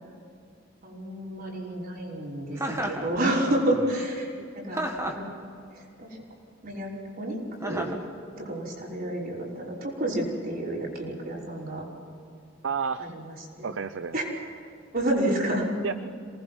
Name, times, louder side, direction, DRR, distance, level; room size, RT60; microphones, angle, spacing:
voice 1, 0.8-4.4 4.6-5.2 5.7-6.2 6.6-7.9 8.4-11.9 13.0-13.7 14.1-14.2 14.9-15.7, right 1 dB, 50° right, -3 dB, 5.7 m, -30 dB
Chuckle chortle, 2.6-3.1 4.7-5.3 7.6-8.0, right 1 dB, 15° right, 2.2 m, -31 dB
voice 2, 12.6-13.1 13.6-14.2 15.8-15.9, right 5 dB, 70° right, 13 dB, 0.6 m, -31 dB
27.5 x 19.5 x 6.1 m, 2.5 s
head